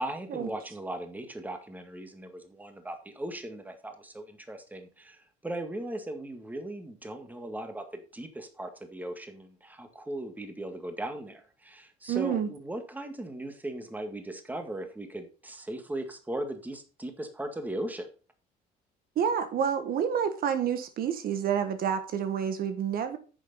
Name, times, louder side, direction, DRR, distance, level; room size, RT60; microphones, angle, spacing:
voice 1, 0.0-18.1, right 1 dB, 10° right, 6 dB, 1.8 m, -38 dB
voice 2, 12.1-12.5 19.1-23.2, right 8 dB, 60° right, 9 dB, 1.4 m, -28 dB
9.9 x 6.6 x 4.0 m, 0.36 s
cardioid pair, 110°, 17 cm